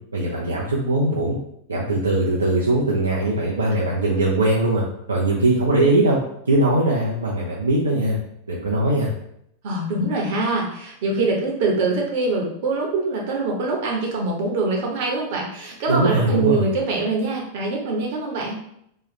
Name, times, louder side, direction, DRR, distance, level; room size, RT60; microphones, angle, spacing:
voice 1, 0.1-1.4 1.7-4.8 5.1-6.2 6.5-8.2 8.5-9.1 15.9-16.7, right 2 dB, 75° right, -4 dB, 0.6 m, -20 dB
voice 2, 9.6-18.6, right 3 dB, 50° right, -1 dB, 1.0 m, -24 dB
3.1 x 2.4 x 4.1 m, 0.74 s
figure-of-eight pair, 90°, 0 cm